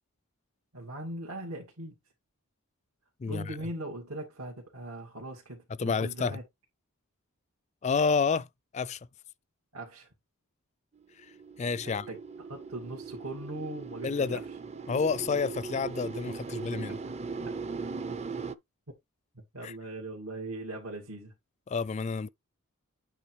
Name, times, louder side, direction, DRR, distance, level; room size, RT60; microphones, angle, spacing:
voice 1, 0.7-2.0 3.2-6.4 9.7-10.1 11.8-12.2 12.5-14.6 19.3-21.3, right 1 dB, 80° right, 2.3 m, -40 dB
voice 2, 3.2-3.5 5.8-6.4 7.8-8.5 8.7-9.0 11.6-12.1 14.0-14.4 14.9-17.0 19.6-19.7 21.7-22.3, left 5 dB, 30° left, 0.3 m, -29 dB
sound 1, 11.0-18.5, right 4 dB, 30° right, 0.5 m, -39 dB
8.5 x 3.4 x 4.8 m
head